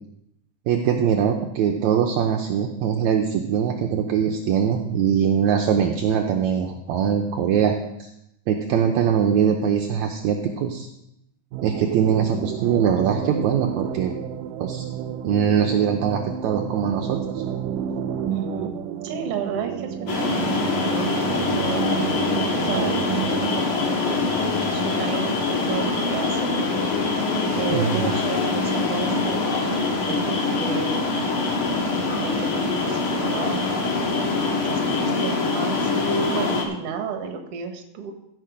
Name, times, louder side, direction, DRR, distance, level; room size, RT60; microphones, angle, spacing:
voice 1, 0.7-7.8 8.5-10.9 11.6-14.2 14.6-14.9 15.2-17.2 27.7-28.2, right 8 dB, 75° right, 3 dB, 1.9 m, -22 dB
sound 1, 11.5-23.5, right 9 dB, 90° right, 2.3 m, -30 dB
voice 2, 18.3-21.9 22.6-23.0 23.5-26.6 27.5-31.0 32.2-33.9 34.5-35.9 36.3-38.1, right 6 dB, 55° right, 5 dB, 2.0 m, -33 dB
sound 2, 20.1-36.6, left 3 dB, 45° left, 2.1 m, -24 dB
15.5 x 6.6 x 5.1 m, 0.83 s
omnidirectional pair, 3.7 m